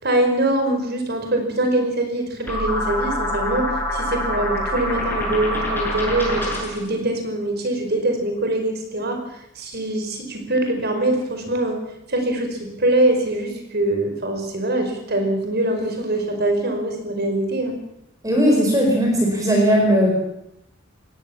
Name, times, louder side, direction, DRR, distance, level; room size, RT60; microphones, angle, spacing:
voice 1, 0.0-11.8 12.1-17.8, right 1 dB, 50° right, 5 dB, 5.3 m, -23 dB
sound 1, 2.5-6.9, left 1 dB, 10° left, 7.7 m, -25 dB
voice 2, 18.2-20.2, equal, 15° right, 0 dB, 4.9 m, -17 dB
22.0 x 18.0 x 7.3 m, 0.81 s
head